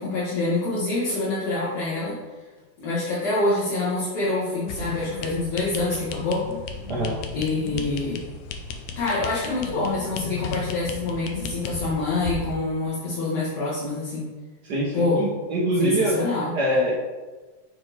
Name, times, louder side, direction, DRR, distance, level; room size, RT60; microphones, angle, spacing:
voice 1, 0.0-2.2 2.8-6.4 7.3-8.2 9.0-14.3 14.9-15.2 15.8-16.5, left 2 dB, 55° left, -8 dB, 2.4 m, -26 dB
sound 1, 4.7-12.5, left 5 dB, 80° left, 1.9 m, -34 dB
voice 2, 14.6-16.2 16.5-16.9, right 1 dB, 90° right, -5 dB, 0.8 m, -24 dB
8.4 x 3.3 x 4.6 m, 1.3 s
omnidirectional pair, 3.4 m